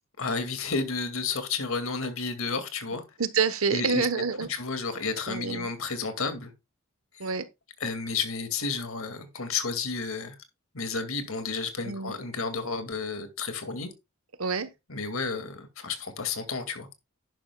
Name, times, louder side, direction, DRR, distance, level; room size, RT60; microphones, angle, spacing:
voice 1, 0.2-3.0 3.7-4.1 4.4-6.5 7.8-10.4 10.7-13.9 14.9-17.0, left 4 dB, 80° left, 2.2 m, -31 dB
voice 2, 3.2-4.5 5.3-5.7 7.2-7.5 11.8-12.2 14.4-14.7, right 5 dB, 85° right, 1.1 m, -27 dB
11.0 x 10.5 x 2.3 m
head